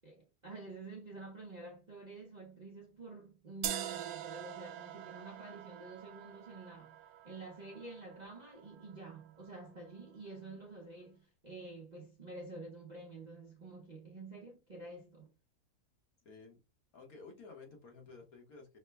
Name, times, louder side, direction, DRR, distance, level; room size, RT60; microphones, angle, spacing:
voice 1, 0.0-15.3, right 3 dB, 45° right, 0.5 m, -49 dB
sound 1, 3.6-9.6, right 11 dB, 75° right, 1.1 m, -45 dB
voice 2, 16.2-16.6 16.9-18.8, left 4 dB, 65° left, 1.5 m, -53 dB
5.6 x 2.1 x 3.3 m
omnidirectional pair, 1.7 m